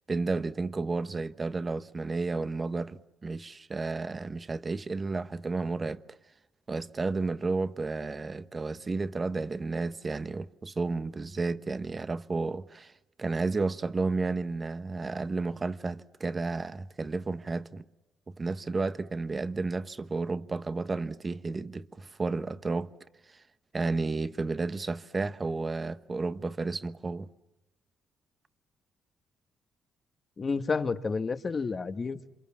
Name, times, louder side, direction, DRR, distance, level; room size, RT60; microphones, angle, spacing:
voice 1, 0.1-6.2 6.7-12.9 13.2-17.8 18.3-22.9 23.3-23.4 23.7-27.3, right 3 dB, 30° right, 1.2 m, -32 dB
voice 2, 30.4-32.3, left 4 dB, 35° left, 1.6 m, -30 dB
28.5 x 27.0 x 7.4 m
cardioid pair, 90°, 0 cm